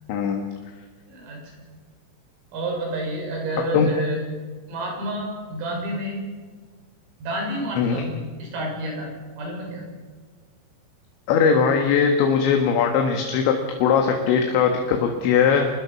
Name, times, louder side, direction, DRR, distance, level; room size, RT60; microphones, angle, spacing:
voice 1, 0.1-0.5 3.7-3.9 7.8-8.1 11.3-13.5 13.8-15.7, left 6 dB, 70° left, 3 dB, 3.7 m, -20 dB
voice 2, 1.1-1.5 2.5-4.2 4.7-6.2 7.2-8.0 8.4-9.8, right 1 dB, 90° right, 0 dB, 9.0 m, -29 dB
25.5 x 20.5 x 5.9 m, 1.5 s
omnidirectional pair, 5.8 m